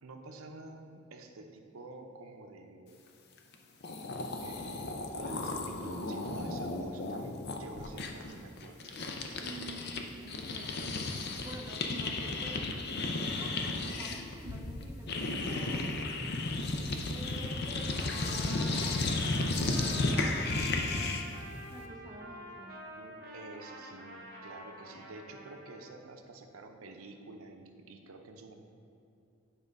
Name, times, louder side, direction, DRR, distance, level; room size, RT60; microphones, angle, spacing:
voice 1, 0.0-3.0 4.4-9.0 22.9-28.5, right 2 dB, 80° right, 4 dB, 0.6 m, -49 dB
sound 1, 3.5-3.6 3.8-10.0 10.3-21.4, left 2 dB, 50° left, 0.6 m, -34 dB
voice 2, 9.4-10.9 11.4-12.7 13.3-16.0 17.1-19.3 19.6-20.6 21.7-22.8, right 1 dB, 15° right, 0 dB, 0.6 m, -48 dB
Trumpet, 17.5-26.0, equal, 45° right, 1.0 m, -48 dB
9.6 x 3.7 x 5.2 m, 2.7 s
head